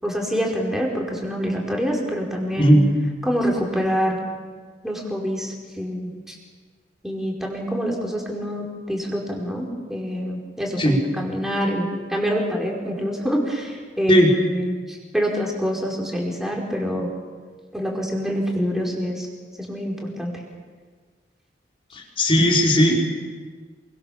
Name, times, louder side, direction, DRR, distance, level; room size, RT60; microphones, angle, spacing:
voice 1, 0.0-2.7 3.2-4.2 4.8-6.4 7.0-17.1 17.7-19.3 19.6-20.3, equal, ahead, -1 dB, 5.1 m, -26 dB
voice 2, 2.6-2.9 10.8-11.0 14.1-14.3 22.2-22.9, equal, 30° left, -1 dB, 4.8 m, -16 dB
28.0 x 24.5 x 7.2 m, 1.5 s
head